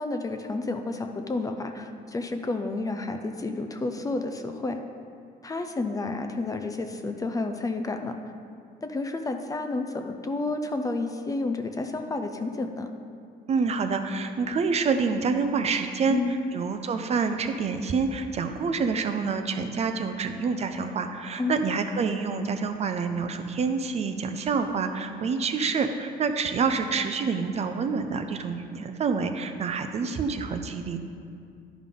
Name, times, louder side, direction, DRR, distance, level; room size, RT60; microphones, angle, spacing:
voice 1, 0.0-4.8 5.4-8.2 8.8-12.9 16.1-16.5 21.4-21.7, left 3 dB, 20° left, 6 dB, 0.5 m, -30 dB
voice 2, 13.5-31.0, right 5 dB, 40° right, 7 dB, 0.5 m, -27 dB
11.0 x 5.2 x 3.7 m, 2.3 s
cardioid pair, 110°, 17 cm